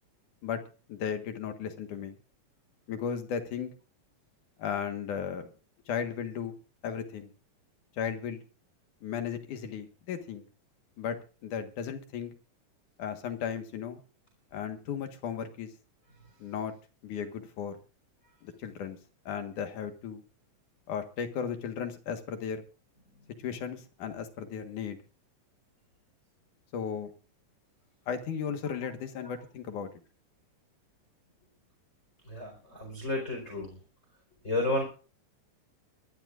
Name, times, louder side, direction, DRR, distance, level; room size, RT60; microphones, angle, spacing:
voice 1, 0.9-2.2 2.9-3.7 4.6-5.5 5.9-6.6 6.8-7.3 8.0-8.4 9.0-10.5 11.0-11.2 11.4-12.3 13.0-14.0 14.5-15.7 16.4-16.7 17.0-17.8 18.4-19.0 19.3-20.2 20.9-22.6 23.4-25.0 26.7-27.1 28.1-29.9, left 7 dB, 65° left, 7 dB, 2.9 m, -35 dB
voice 2, 32.3-33.8 34.4-34.8, left 2 dB, 20° left, 1 dB, 4.6 m, -32 dB
23.5 x 13.0 x 2.5 m, 0.37 s
omnidirectional pair, 3.9 m